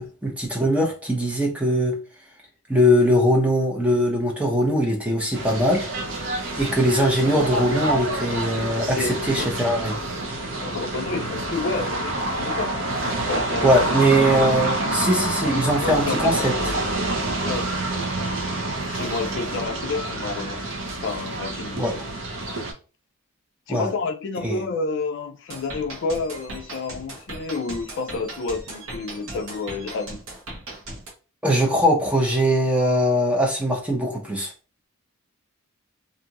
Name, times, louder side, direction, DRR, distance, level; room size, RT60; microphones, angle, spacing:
voice 1, 0.0-2.0 2.7-5.9 6.6-10.0 13.6-16.7 21.8-21.9 23.7-23.9 24.4-24.6 31.4-34.5, equal, 5° right, 0.6 m, -21 dB
sound 1, 5.3-22.7, right 2 dB, 55° right, 0.6 m, -27 dB
voice 2, 9.0-9.5 10.6-12.7 13.2-13.7 14.2-14.5 15.8-16.3 17.4-17.8 18.8-20.6 21.0-21.9 23.7-30.2, left 3 dB, 55° left, 0.3 m, -30 dB
sound 2, 25.5-31.1, right 2 dB, 75° right, 1.0 m, -38 dB
2.5 x 2.4 x 2.9 m
head